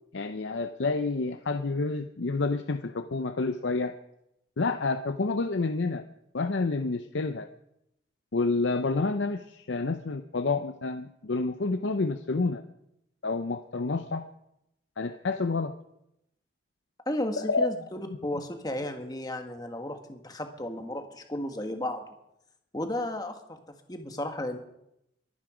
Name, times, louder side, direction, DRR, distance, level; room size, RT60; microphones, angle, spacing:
voice 1, 0.1-4.0 4.6-6.0 6.3-7.5 8.3-12.6 13.2-14.3 15.0-15.7 17.4-17.7 18.3-18.4, left 3 dB, 75° left, 8 dB, 0.6 m, -29 dB
voice 2, 17.1-22.0 22.7-23.6 23.9-24.6, left 1 dB, 20° left, 5 dB, 1.5 m, -34 dB
22.5 x 9.6 x 5.0 m, 0.83 s
head